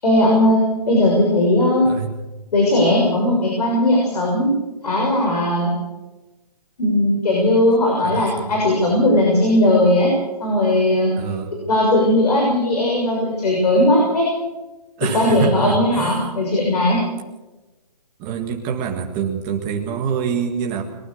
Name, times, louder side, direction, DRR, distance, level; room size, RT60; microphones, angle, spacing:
voice 1, 0.0-0.6 0.8-1.9 2.5-4.5 4.8-5.7 6.8-10.1 10.4-11.1 11.7-14.3 15.1-17.0, left 1 dB, 70° left, -1 dB, 6.8 m, -17 dB
voice 2, 8.0-8.6 11.2-11.5 15.0-16.2 18.2-20.8, right 7 dB, 15° right, 3 dB, 1.7 m, -25 dB
22.0 x 19.0 x 6.5 m, 1.1 s
hypercardioid pair, 175°, 21 cm